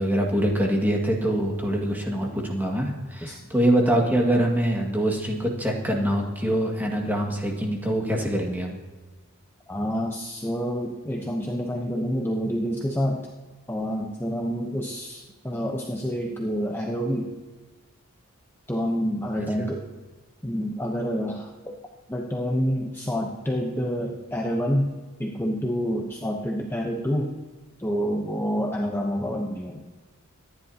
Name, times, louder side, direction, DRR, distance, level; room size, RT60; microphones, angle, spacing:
voice 1, 0.0-8.8 19.4-19.5, right 1 dB, 10° right, 0 dB, 2.0 m, -24 dB
voice 2, 9.7-13.3 13.7-17.3 18.7-19.8 20.4-21.8 22.1-24.9 25.2-27.3 27.8-29.8, equal, 10° left, 0 dB, 0.9 m, -28 dB
24.5 x 10.5 x 2.9 m, 1.3 s
head